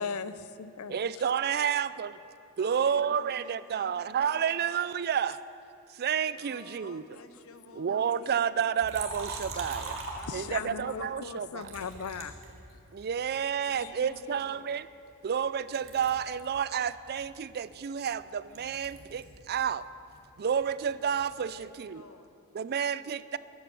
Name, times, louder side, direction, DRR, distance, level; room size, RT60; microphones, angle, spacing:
voice 1, 0.0-1.0 10.3-12.3 13.8-13.9, left 6 dB, 85° left, 14 dB, 0.6 m, -37 dB
voice 2, 0.9-2.2 2.6-5.4 5.9-7.0 7.8-10.0 10.3-11.7 12.9-14.9 15.2-19.8 20.4-22.0 22.5-23.4, right 7 dB, 45° right, 16 dB, 0.4 m, -30 dB
voice 3, 2.6-4.6 6.3-8.3 10.1-11.2 13.7-14.8 21.4-22.4, left 3 dB, 70° left, 8 dB, 1.1 m, -52 dB
Liquid, 8.8-10.8 11.6-13.2 13.7-15.5 15.7-19.4 19.7-21.3, right 3 dB, 65° right, 2.3 m, -43 dB
14.0 x 11.0 x 7.7 m, 2.7 s
head